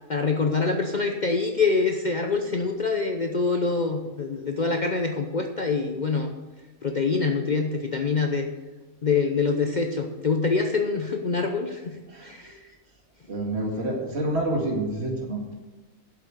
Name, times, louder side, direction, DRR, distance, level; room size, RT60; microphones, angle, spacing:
voice 1, 0.1-6.3 6.8-8.5 9.0-12.0 12.2-12.5, left 4 dB, 40° left, 4 dB, 0.7 m, -25 dB
voice 2, 12.1-12.6 13.3-15.5, right 1 dB, 50° right, 0 dB, 2.3 m, -28 dB
8.0 x 7.5 x 8.0 m, 1.2 s
omnidirectional pair, 1.4 m